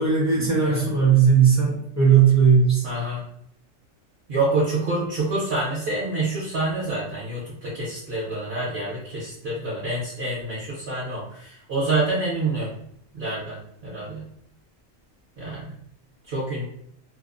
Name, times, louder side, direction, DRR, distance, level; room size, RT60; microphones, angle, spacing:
voice 1, 0.0-2.8, right 6 dB, 20° right, -5 dB, 0.4 m, -17 dB
voice 2, 2.8-3.2 4.3-12.7 13.1-14.2 15.4-15.7 16.3-16.6, right 2 dB, 60° right, -7 dB, 0.9 m, -27 dB
2.5 x 2.0 x 2.4 m, 0.70 s
omnidirectional pair, 1.4 m